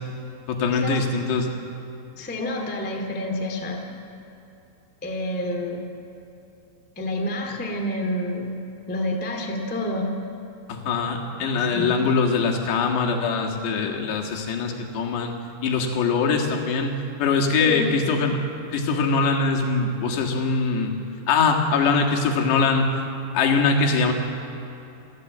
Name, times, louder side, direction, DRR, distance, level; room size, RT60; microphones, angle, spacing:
voice 1, 0.5-1.5 10.7-15.4 15.6-18.4 18.7-20.9 21.3-22.9 23.3-24.1, left 4 dB, 90° left, 1 dB, 4.1 m, -22 dB
voice 2, 2.2-3.8 5.0-5.9 6.9-8.6 8.9-10.1 11.6-12.0 17.6-17.9, left 1 dB, 5° left, 2 dB, 0.7 m, -28 dB
28.5 x 13.0 x 8.0 m, 3.0 s
omnidirectional pair, 4.8 m